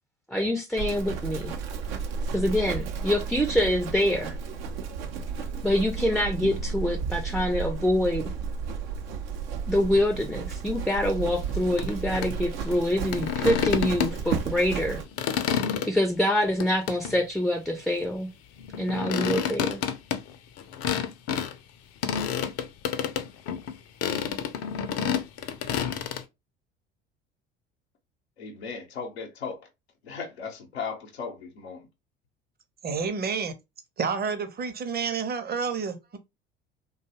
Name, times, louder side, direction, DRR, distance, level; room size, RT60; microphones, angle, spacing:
voice 1, 0.3-1.5 2.3-4.4 5.6-8.3 9.7-15.0 15.9-18.3 18.8-19.8, left 1 dB, ahead, 0.4 m, -25 dB
Livestock farm animals working animals, 0.8-15.1, right 6 dB, 75° right, 0.7 m, -33 dB
sound 1, 11.8-11.9 12.2-12.3 13.1-14.4 14.8-15.9 16.6-17.2 18.6-21.5 22.0-23.7 24.0-26.2, left 8 dB, 55° left, 0.6 m, -29 dB
voice 2, 28.4-29.6 30.0-31.9, left 5 dB, 90° left, 0.7 m, -36 dB
voice 3, 32.8-33.5 34.0-36.2, right 5 dB, 30° right, 0.7 m, -29 dB
2.6 x 2.3 x 2.8 m
hypercardioid pair, 65°, 31 cm